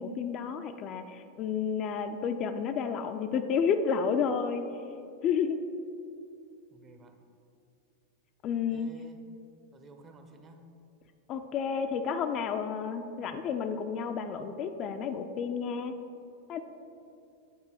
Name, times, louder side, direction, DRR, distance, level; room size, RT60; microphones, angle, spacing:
voice 1, 0.0-4.7 5.2-5.6 8.4-8.9 11.3-15.9 16.5-16.6, left 6 dB, 35° left, 7 dB, 0.3 m, -31 dB
voice 2, 6.7-7.2 8.7-9.2 9.7-10.7, right 3 dB, 25° right, 5 dB, 0.6 m, -52 dB
8.6 x 3.9 x 4.3 m, 2.6 s
figure-of-eight pair, 90°, 0 cm